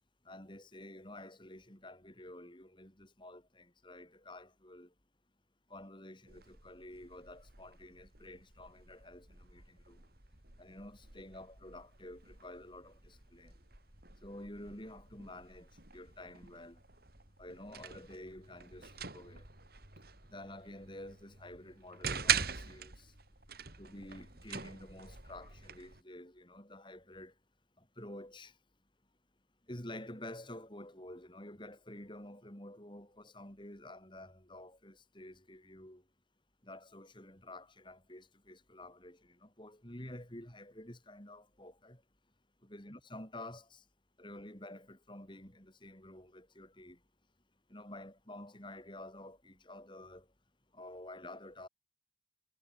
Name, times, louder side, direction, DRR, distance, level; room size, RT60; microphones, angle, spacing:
voice 1, 0.2-4.9 5.7-10.0 10.6-13.5 14.2-16.8 17.4-19.5 20.3-23.1 23.8-27.3 27.8-28.5 29.7-36.0 36.6-42.0 42.6-43.8 44.2-47.0 47.7-50.3 50.7-51.7, left 1 dB, 25° left, 5.1 m, -50 dB
sound 1, 6.3-26.0, right 8 dB, 50° right, 3.9 m, -43 dB
head